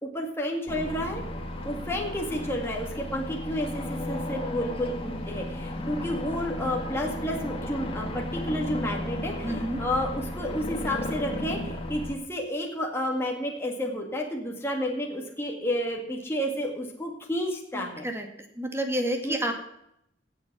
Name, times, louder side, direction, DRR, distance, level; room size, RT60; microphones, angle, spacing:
voice 1, 0.0-1.2 1.6-18.1 19.2-19.4, equal, 15° left, 0 dB, 2.1 m, -31 dB
sound 1, 0.7-12.1, left 1 dB, 30° left, 2.1 m, -34 dB
voice 2, 9.4-9.8 17.7-18.3 18.6-19.5, right 1 dB, 15° right, 4 dB, 2.2 m, -29 dB
16.5 x 8.1 x 6.1 m, 0.76 s
head